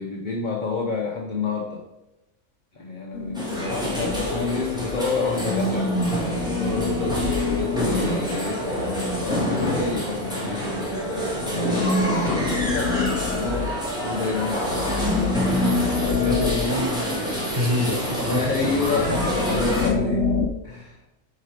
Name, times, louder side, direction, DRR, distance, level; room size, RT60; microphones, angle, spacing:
voice 1, 0.0-1.8 2.7-5.9 6.4-15.0 16.0-16.4 18.3-20.3 20.6-21.0, left 4 dB, 40° left, 0 dB, 1.1 m, -29 dB
sound 1, 3.1-4.9 5.4-9.7 11.5-14.2 14.5-17.8 18.8-20.5, left 3 dB, 65° left, 1.1 m, -27 dB
sound 2, 3.3-19.9, equal, 5° right, 2.3 m, -28 dB
voice 2, 16.1-19.0, equal, 40° right, -6 dB, 3.4 m, -27 dB
10.0 x 4.8 x 5.0 m, 0.99 s
omnidirectional pair, 1.3 m